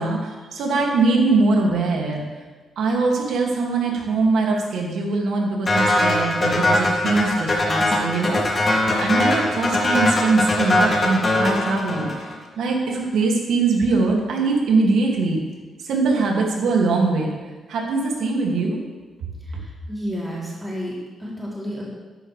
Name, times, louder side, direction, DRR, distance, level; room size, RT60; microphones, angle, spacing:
voice 1, 0.0-2.2 2.8-12.3 12.6-15.4 15.8-17.3 17.7-18.8, right 3 dB, 80° right, 0 dB, 2.2 m, -22 dB
sound 1, 5.7-12.3, left 1 dB, 35° left, 2.4 m, -21 dB
voice 2, 19.4-21.9, equal, 5° right, -7 dB, 3.2 m, -31 dB
12.5 x 11.0 x 3.3 m, 1.3 s
cardioid pair, 110°, 0 cm